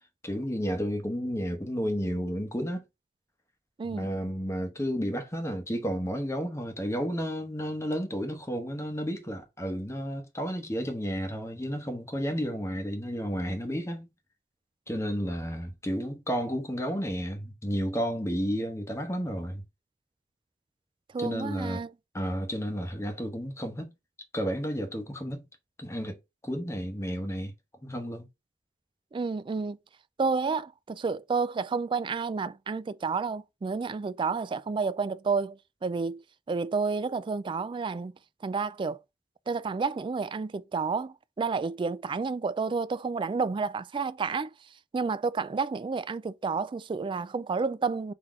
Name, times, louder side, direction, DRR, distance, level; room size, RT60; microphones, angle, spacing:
voice 1, 0.2-2.8 3.9-14.1 14.9-19.6 21.2-21.8 22.1-23.9 24.3-25.5 25.8-26.2 26.4-27.5 27.8-28.2, equal, 15° left, 0.9 m, -32 dB
voice 2, 3.8-4.1 21.1-21.9 29.1-29.8 30.2-36.2 36.5-38.1 38.4-39.0 39.5-44.5 44.9-48.1, right 4 dB, 30° right, 0.3 m, -30 dB
3.9 x 2.8 x 4.7 m
head